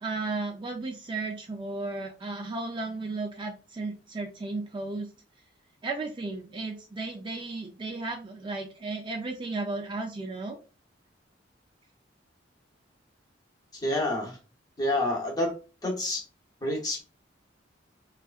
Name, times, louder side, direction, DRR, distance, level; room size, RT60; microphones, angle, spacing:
voice 1, 0.0-5.1 5.8-10.6, right 3 dB, 25° right, 2 dB, 0.3 m, -34 dB
voice 2, 13.8-14.4 14.8-15.5 15.8-16.2 16.6-17.0, left 1 dB, 20° left, 0 dB, 0.7 m, -28 dB
2.6 x 2.3 x 2.3 m, 0.34 s
head